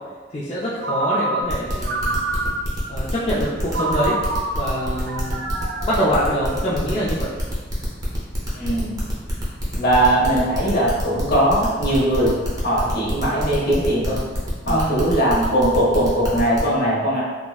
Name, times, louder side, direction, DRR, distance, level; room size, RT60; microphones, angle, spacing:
voice 1, 0.3-2.2 2.9-4.2 4.5-5.6 5.8-7.4 14.7-15.1, equal, 30° left, -9 dB, 0.4 m, -24 dB
Ringtone, 0.8-2.9 3.7-7.1, right 2 dB, 65° right, 0.3 m, -27 dB
sound 1, 1.5-16.6, equal, 20° right, 0.7 m, -27 dB
voice 2, 8.5-9.0 9.7-14.2 14.6-17.2, right 1 dB, 55° left, -6 dB, 0.9 m, -20 dB
3.7 x 2.0 x 2.3 m, 1.4 s
head